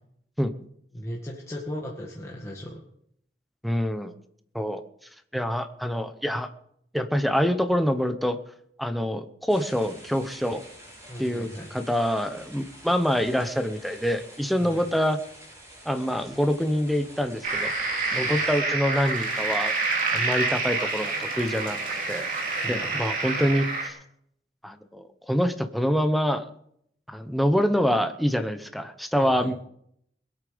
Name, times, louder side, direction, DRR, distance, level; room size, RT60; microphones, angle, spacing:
voice 1, 0.9-2.8 11.1-11.7 14.6-14.8 18.1-18.4 22.6-22.9 29.2-29.5, equal, 15° left, -3 dB, 1.7 m, -37 dB
voice 2, 3.6-4.1 4.5-4.8 5.3-6.5 6.9-8.4 8.8-10.6 11.2-15.2 15.8-19.7 20.1-21.8 22.1-22.3 22.7-24.0 24.6-26.5 27.1-29.5, equal, ahead, 7 dB, 0.9 m, -26 dB
sound 1, 9.5-18.6, right 1 dB, 15° right, 5.3 m, -48 dB
sound 2, 17.4-23.9, right 3 dB, 50° right, 3.0 m, -27 dB
21.5 x 8.7 x 5.2 m, 0.71 s
head